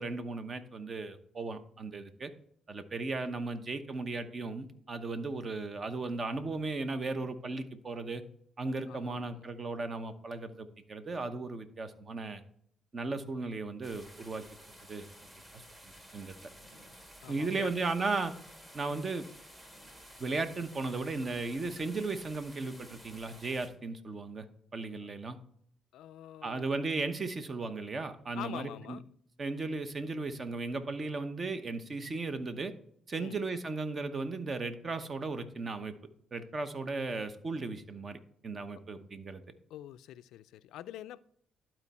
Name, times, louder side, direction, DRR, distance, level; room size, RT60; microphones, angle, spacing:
voice 1, 0.0-2.3 2.7-8.2 8.6-12.4 12.9-14.4 14.9-15.1 15.5-16.5 17.3-18.3 18.7-19.2 20.2-24.5 24.7-25.4 26.4-29.0 29.4-32.7 33.1-35.9 36.3-39.4, right 3 dB, 40° right, 0.9 m, -36 dB
voice 2, 8.9-9.4 17.2-17.7 18.9-19.1 25.0-25.1 25.9-26.7 28.3-29.0 33.2-33.4 38.7-38.8 39.7-41.2, left 12 dB, 85° left, 0.3 m, -46 dB
sound 1, 13.8-23.7, equal, 20° right, 1.9 m, -53 dB
11.5 x 4.5 x 4.2 m
cardioid pair, 90°, 0 cm